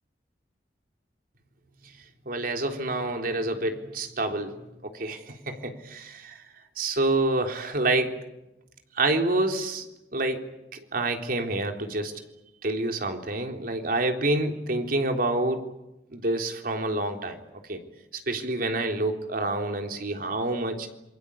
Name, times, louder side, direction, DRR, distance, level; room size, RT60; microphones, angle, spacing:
voice 1, 2.3-4.6 4.9-6.3 6.8-8.1 9.0-9.9 10.1-10.4 10.9-12.1 12.6-15.6 16.1-17.4 17.7-17.8 18.3-20.9, right 2 dB, 55° right, 4 dB, 3.7 m, -27 dB
28.0 x 23.0 x 8.5 m, 0.96 s
head